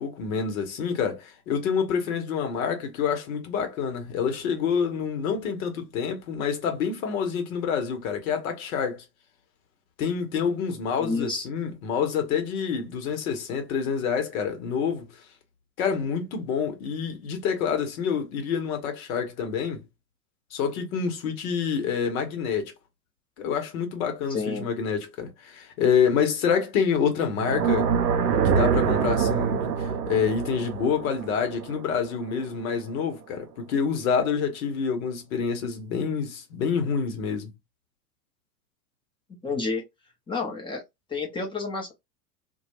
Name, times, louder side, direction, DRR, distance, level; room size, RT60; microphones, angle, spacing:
voice 1, 0.0-9.0 10.0-15.1 15.8-19.8 20.5-22.7 23.4-27.9 28.3-37.5, left 6 dB, 60° left, 1.0 m, -27 dB
voice 2, 11.0-11.5 24.3-24.7 39.4-39.8 40.3-40.8 41.1-41.9, left 3 dB, 10° left, 0.7 m, -29 dB
sound 1, 27.3-32.4, right 7 dB, 85° right, 0.6 m, -25 dB
2.2 x 2.2 x 3.0 m
figure-of-eight pair, 85°, 48 cm